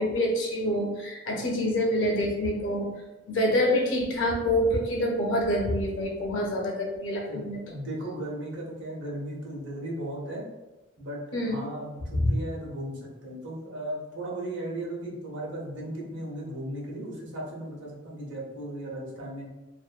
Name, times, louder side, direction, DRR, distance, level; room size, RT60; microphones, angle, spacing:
voice 1, 0.0-2.9 3.3-7.6 11.3-11.6, left 1 dB, 70° left, 0 dB, 0.6 m, -26 dB
voice 2, 7.7-10.4 11.0-19.5, right 1 dB, 65° right, -3 dB, 0.7 m, -36 dB
2.5 x 2.4 x 2.2 m, 1.1 s
head